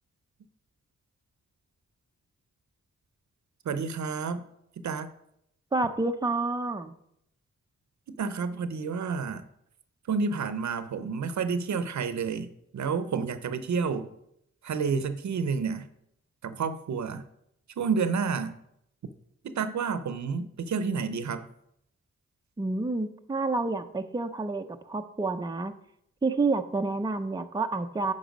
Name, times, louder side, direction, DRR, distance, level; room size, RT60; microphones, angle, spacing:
voice 1, 3.6-4.4 4.8-5.1 8.1-9.4 10.1-14.1 14.6-15.9 16.4-17.2 17.8-18.6 19.4-21.5, right 5 dB, 75° right, 12 dB, 0.7 m, -30 dB
voice 2, 5.7-6.9 22.6-25.7 26.2-28.1, right 3 dB, 15° right, 7 dB, 0.6 m, -29 dB
9.1 x 5.4 x 5.2 m, 0.75 s
wide cardioid pair, 100°, 29 cm